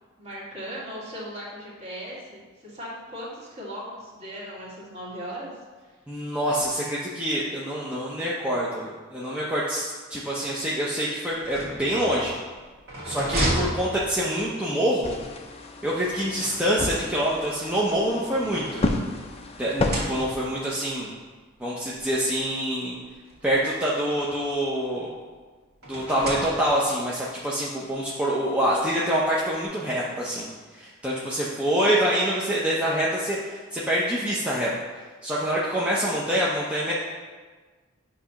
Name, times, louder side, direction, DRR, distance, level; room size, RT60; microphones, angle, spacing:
voice 1, 0.2-5.5 31.6-32.0, equal, 30° right, -7 dB, 2.0 m, -38 dB
voice 2, 6.1-12.3 13.0-15.2 15.8-18.8 19.6-21.1 21.6-23.0 23.4-25.1 25.9-30.5 30.7-34.7 35.2-36.9, equal, 5° right, -7 dB, 0.7 m, -26 dB
sound 1, 11.4-14.6 15.9-17.1 17.9-19.3 19.7-20.6 21.6-21.7 22.0-22.1 23.3-24.6 25.8-27.0, right 1 dB, 55° right, 1.8 m, -33 dB
sound 2, 15.0-20.3, left 2 dB, 30° left, 0.6 m, -31 dB
8.7 x 2.9 x 5.7 m, 1.4 s
head